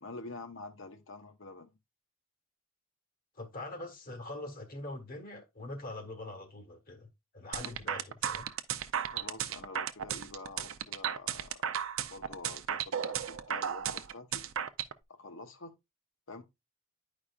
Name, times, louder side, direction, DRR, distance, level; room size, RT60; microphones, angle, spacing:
voice 1, 0.0-1.8 9.0-11.7 12.1-14.4 15.1-15.7 16.3-16.4, left 3 dB, 65° left, 1.0 m, -47 dB
voice 2, 3.3-7.1 7.3-8.5, left 2 dB, 45° left, 1.3 m, -43 dB
sound 1, 7.5-14.9, right 9 dB, 70° right, 0.6 m, -34 dB
10.0 x 5.0 x 2.4 m
head